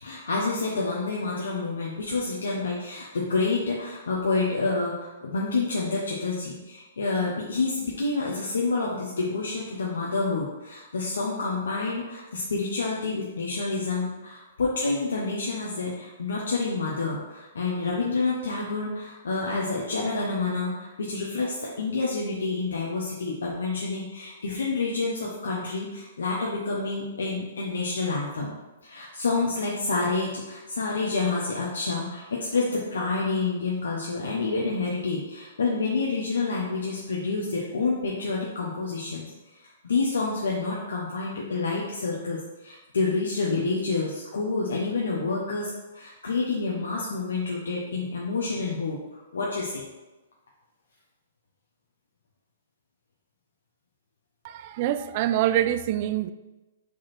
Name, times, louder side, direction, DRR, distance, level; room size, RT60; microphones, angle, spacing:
voice 1, 0.0-28.5 28.8-49.8, left 3 dB, 90° left, 1.0 m, -28 dB
voice 2, 54.4-56.3, right 12 dB, 45° right, 0.3 m, -25 dB
5.2 x 4.1 x 4.4 m
hypercardioid pair, 140°, 0 cm